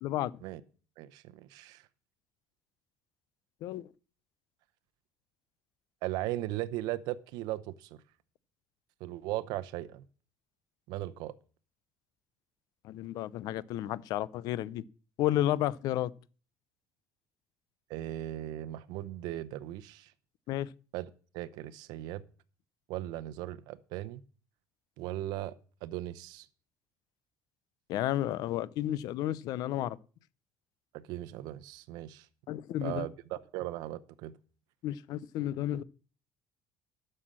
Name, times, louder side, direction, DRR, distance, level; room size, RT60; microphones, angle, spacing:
voice 1, 0.0-0.3 3.6-3.9 12.8-14.8 15.2-16.1 20.5-20.7 27.9-30.0 32.5-33.1 34.8-35.8, left 13 dB, 70° left, 0.7 m, -32 dB
voice 2, 1.0-1.8 6.0-8.0 9.0-10.0 10.9-11.3 17.9-20.1 20.9-21.1 21.3-22.2 22.9-24.2 25.0-25.5 25.8-26.5 30.9-32.3 32.8-34.4, right 15 dB, 85° right, 0.7 m, -38 dB
11.5 x 6.7 x 7.5 m
cardioid pair, 115°, 7 cm